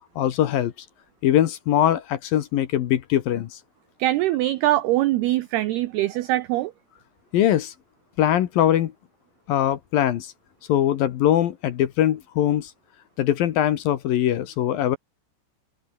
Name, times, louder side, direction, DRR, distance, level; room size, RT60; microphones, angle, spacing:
voice 1, 0.2-0.7 1.2-3.6 7.3-7.7 8.2-8.9 9.5-10.3 10.7-12.7 13.2-15.0, left 11 dB, 65° left, 2.4 m, -21 dB
voice 2, 4.0-6.7, right 15 dB, 85° right, 2.3 m, -22 dB
omnidirectional pair, 5.6 m